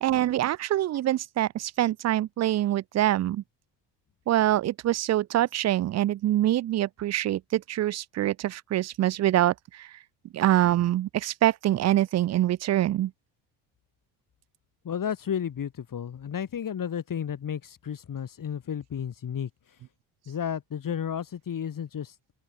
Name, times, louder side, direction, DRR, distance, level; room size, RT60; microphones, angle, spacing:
voice 1, 0.0-3.4 4.3-9.9 10.3-13.1, right 13 dB, 40° right, 0.5 m, -25 dB
voice 2, 14.8-19.8 20.2-22.1, left 8 dB, 45° left, 6.8 m, -33 dB
supercardioid pair, 90°, 45 cm